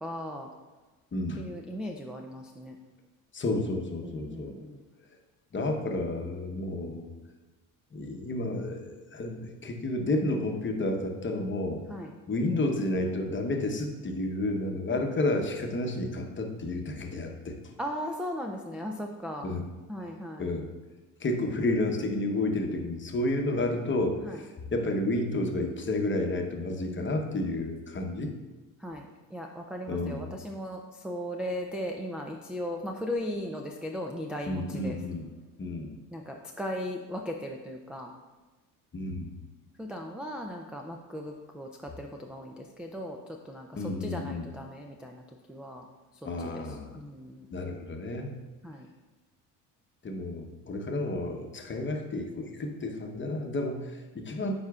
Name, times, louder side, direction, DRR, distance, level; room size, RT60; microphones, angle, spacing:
voice 1, 0.0-0.5 1.4-2.8 4.0-4.8 11.9-12.1 14.9-15.0 17.8-19.5 19.9-20.5 24.2-24.4 26.8-27.1 28.8-35.0 36.1-38.1 39.8-43.2 43.4-45.2 45.5-45.9 46.4-46.6 46.9-47.5 48.6-48.9, equal, ahead, 2 dB, 0.3 m, -37 dB
voice 2, 1.1-1.4 3.3-4.6 5.5-7.1 7.9-11.8 12.3-17.6 19.4-19.6 20.4-20.7 21.2-28.3 29.9-30.3 34.5-35.3 35.6-35.9 38.9-39.3 43.7-44.5 46.2-47.0 47.5-48.4 50.0-54.5, left 2 dB, 25° left, 3 dB, 0.9 m, -31 dB
9.1 x 4.3 x 2.4 m, 1.2 s
supercardioid pair, 75°, 45 cm